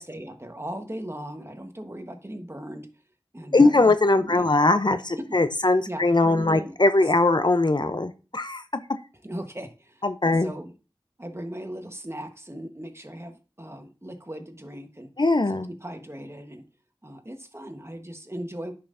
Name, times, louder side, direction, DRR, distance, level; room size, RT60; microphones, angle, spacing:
voice 1, 0.0-2.9 3.3-4.5 5.2-5.4 5.9-6.7 9.2-10.7 11.2-15.1 15.5-16.6 17.0-18.7, right 1 dB, 25° right, 6 dB, 1.2 m, -38 dB
voice 2, 3.5-8.8 10.0-10.5 15.2-15.7, left 2 dB, 50° left, 11 dB, 0.6 m, -21 dB
10.0 x 5.6 x 2.6 m, 0.32 s
wide cardioid pair, 45°, 10 cm